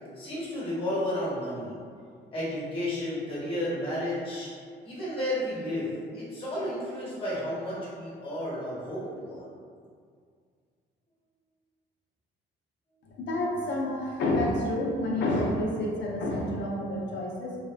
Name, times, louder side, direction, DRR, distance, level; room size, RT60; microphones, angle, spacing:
voice 1, 0.1-1.8 2.3-4.5 4.8-9.5, left 1 dB, 25° left, -7 dB, 1.1 m, -32 dB
voice 2, 13.0-17.6, left 1 dB, 65° left, -2 dB, 0.5 m, -29 dB
2.7 x 2.0 x 2.4 m, 2.1 s
cardioid pair, 90°, 20 cm